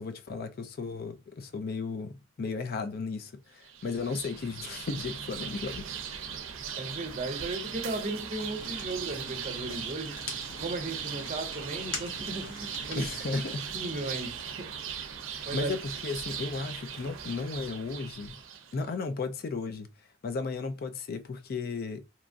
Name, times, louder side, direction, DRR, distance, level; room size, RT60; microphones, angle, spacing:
voice 1, 0.0-5.9 12.9-13.7 15.5-18.4 18.7-19.9 20.2-22.0, left 4 dB, 50° left, 0.4 m, -34 dB
sound 1, 3.6-18.8, right 7 dB, 85° right, 0.5 m, -39 dB
voice 2, 6.8-10.2 10.6-13.1 13.7-14.7 15.4-15.7, right 2 dB, 40° right, 0.6 m, -36 dB
Fire, 8.4-14.2, left 3 dB, 70° left, 0.9 m, -44 dB
2.9 x 2.4 x 2.5 m
head